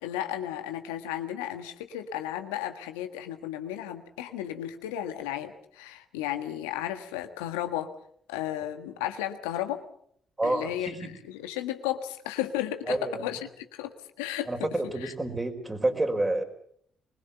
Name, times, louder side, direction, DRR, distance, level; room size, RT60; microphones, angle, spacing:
voice 1, 0.0-7.9 8.3-9.8 10.4-14.7 15.0-15.1, left 12 dB, 85° left, 7 dB, 1.5 m, -34 dB
voice 2, 10.4-11.1 12.9-13.2 14.5-16.4, right 2 dB, 25° right, 6 dB, 4.9 m, -29 dB
24.0 x 21.5 x 6.9 m, 0.65 s
hypercardioid pair, 45°, 0 cm